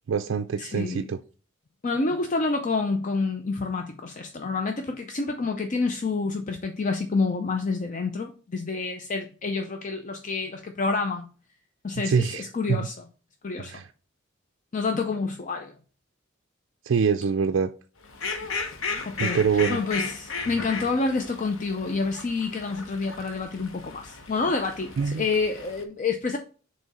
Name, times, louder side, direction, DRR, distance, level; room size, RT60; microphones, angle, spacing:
voice 1, 0.1-1.2 12.0-12.9 13.6-13.9 16.8-17.7 19.2-19.8 25.0-25.3, right 6 dB, 65° right, 0.4 m, -25 dB
voice 2, 0.6-1.1 1.8-11.3 11.8-12.9 13.4-13.7 14.7-15.7 19.1-26.4, left 3 dB, 40° left, 0.5 m, -28 dB
Fowl, 18.0-25.8, left 4 dB, 80° left, 1.0 m, -35 dB
7.3 x 3.2 x 4.1 m
head